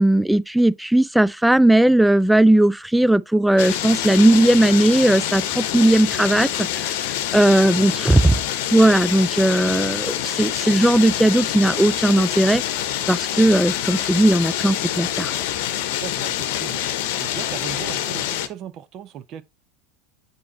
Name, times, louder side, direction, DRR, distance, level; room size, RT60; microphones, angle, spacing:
voice 1, 0.0-7.0 7.3-8.4 8.7-12.6 13.1-15.3, right 1 dB, 5° right, 0.3 m, -17 dB
sound 1, 3.6-18.5, left 11 dB, 60° left, 0.8 m, -26 dB
voice 2, 7.6-8.0 16.0-16.8 17.2-19.4, right 9 dB, 45° right, 0.7 m, -37 dB
8.5 x 2.9 x 4.3 m
hypercardioid pair, 85°, 0 cm